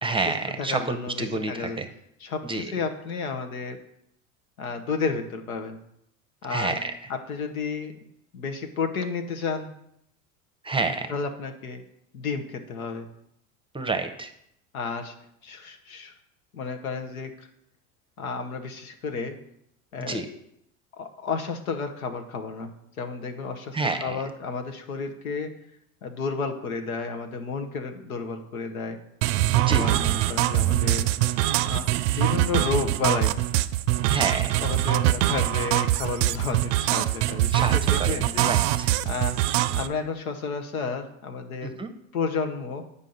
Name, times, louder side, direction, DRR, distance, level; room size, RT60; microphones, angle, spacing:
voice 1, 0.0-1.9 2.4-2.8 6.5-6.9 10.6-11.1 13.7-14.3 20.0-20.3 23.7-24.2 29.7-29.9 34.1-34.7 37.5-38.9 41.6-41.9, right 3 dB, 10° right, 7 dB, 0.7 m, -29 dB
voice 2, 0.6-1.8 2.2-3.8 4.6-5.8 6.4-6.8 7.1-7.9 8.3-9.7 11.1-11.8 12.1-13.1 14.7-15.1 15.4-16.1 16.5-17.5 18.2-19.4 19.9-20.2 21.0-25.5 26.0-29.0 29.7-31.1 31.6-31.9 32.1-33.4 34.6-38.5 39.0-39.4 39.7-41.8 42.1-42.8, left 4 dB, 90° left, 6 dB, 1.0 m, -31 dB
sound 1, 29.2-39.9, right 14 dB, 65° right, 0.5 m, -23 dB
8.3 x 5.4 x 3.9 m, 0.76 s
hypercardioid pair, 80°, 41 cm